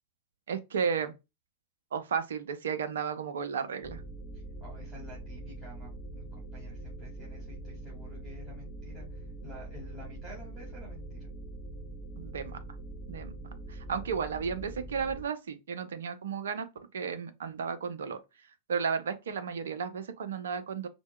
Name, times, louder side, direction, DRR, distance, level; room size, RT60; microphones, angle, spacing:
voice 1, 0.5-1.1 1.9-4.0 12.2-12.6 13.1-13.3 13.7-16.7 16.9-18.2 18.7-20.9, right 6 dB, 65° right, 0.5 m, -33 dB
sound 1, 3.8-15.2, right 2 dB, 35° left, 0.5 m, -43 dB
voice 2, 4.3-11.3, left 1 dB, 20° right, 1.8 m, -50 dB
4.3 x 2.2 x 2.2 m
figure-of-eight pair, 90°, 0 cm